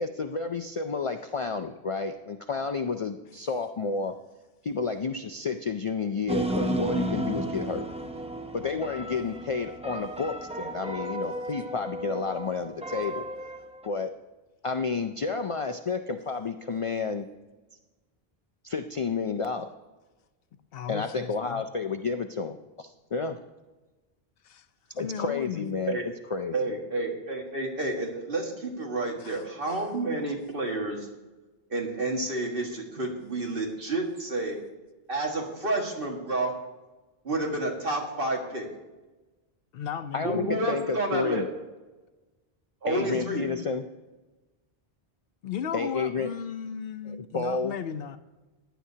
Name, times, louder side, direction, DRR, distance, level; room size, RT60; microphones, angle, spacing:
voice 1, 0.0-4.2 4.6-7.9 8.5-13.3 13.8-14.1 14.6-17.3 18.6-19.7 20.9-23.4 25.0-26.6 40.1-41.5 42.9-43.8 45.7-46.3 47.1-47.7, left 4 dB, 50° left, 6 dB, 0.4 m, -31 dB
sound 1, 6.3-13.9, right 1 dB, 10° right, 0.6 m, -33 dB
voice 2, 20.7-21.6 24.4-24.6 25.0-25.7 29.2-29.9 39.7-40.4 43.1-43.7 45.4-48.2, left 7 dB, 70° left, 10 dB, 0.8 m, -36 dB
voice 3, 26.5-31.1 31.7-34.6 35.1-36.5 37.2-38.7 40.2-41.5 42.8-43.5, right 2 dB, 60° right, 0 dB, 1.9 m, -30 dB
16.0 x 10.0 x 2.8 m, 1.2 s
omnidirectional pair, 1.0 m